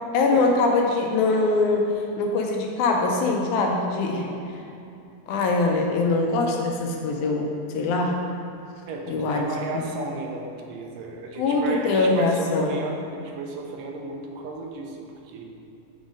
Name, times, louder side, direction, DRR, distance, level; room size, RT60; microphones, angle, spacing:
voice 1, 0.1-4.2 5.3-8.2 9.1-9.4 9.7-9.8 11.4-12.7, left 3 dB, 85° left, 1 dB, 2.0 m, -23 dB
voice 2, 4.1-4.4 8.9-15.4, right 3 dB, 75° right, 1 dB, 1.6 m, -34 dB
6.2 x 3.7 x 5.1 m, 2.7 s
omnidirectional pair, 3.4 m